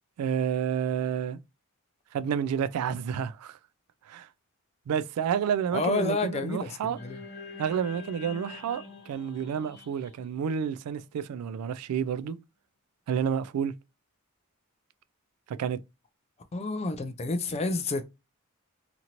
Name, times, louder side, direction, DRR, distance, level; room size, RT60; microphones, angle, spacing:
voice 1, 0.2-1.4 2.1-3.6 4.1-4.3 4.9-7.0 7.6-12.4 13.1-13.7 15.5-15.8, right 8 dB, 90° right, 0.3 m, -30 dB
voice 2, 5.7-7.2 16.5-18.0, left 3 dB, 30° left, 0.3 m, -29 dB
sound 1, 7.0-11.3, left 4 dB, 50° left, 0.9 m, -46 dB
2.9 x 2.5 x 2.8 m
head